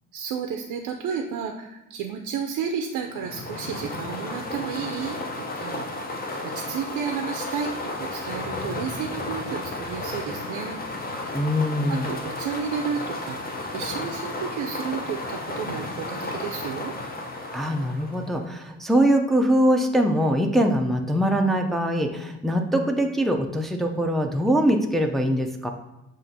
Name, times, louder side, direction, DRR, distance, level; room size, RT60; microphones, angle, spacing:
voice 1, 0.1-10.8 11.9-16.9, right 7 dB, 85° right, 4 dB, 0.5 m, -32 dB
sound 1, 3.1-18.5, left 2 dB, 30° left, 0.7 m, -33 dB
voice 2, 11.3-12.1 17.5-25.7, equal, ahead, 3 dB, 0.4 m, -22 dB
7.3 x 2.5 x 2.7 m, 0.96 s
cardioid pair, 90°, 30 cm